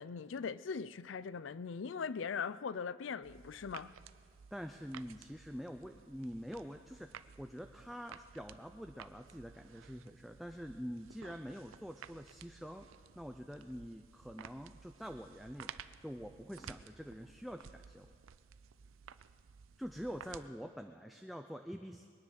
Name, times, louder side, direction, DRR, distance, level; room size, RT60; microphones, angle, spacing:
voice 1, 0.0-3.9, left 6 dB, 75° left, 0.4 m, -40 dB
sound 1, 3.2-20.5, right 7 dB, 90° right, 0.5 m, -55 dB
voice 2, 4.5-12.9 13.2-15.7 16.0-18.1 19.8-22.1, equal, ahead, 0.4 m, -46 dB
22.5 x 9.9 x 6.4 m
head